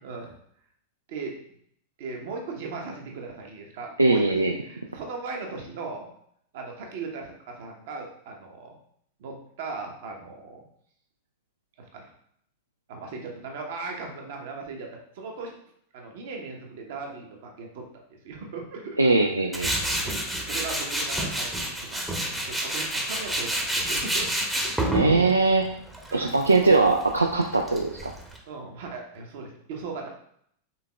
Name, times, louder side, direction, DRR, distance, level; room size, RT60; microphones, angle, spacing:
voice 1, 0.0-0.3 1.1-1.3 2.0-6.1 6.5-8.8 9.2-10.6 11.9-12.1 12.9-15.6 15.9-17.8 18.2-19.3 19.7-24.9 26.1-26.3 28.5-30.1, right 4 dB, 55° right, 1 dB, 0.9 m, -38 dB
voice 2, 4.0-4.5 19.0-19.7 24.9-25.7 26.1-28.1, right 3 dB, 80° right, 2 dB, 0.3 m, -21 dB
Tools, 19.5-28.4, right 1 dB, 5° right, 0.8 m, -29 dB
5.6 x 3.6 x 2.3 m, 0.68 s
figure-of-eight pair, 90°, 0 cm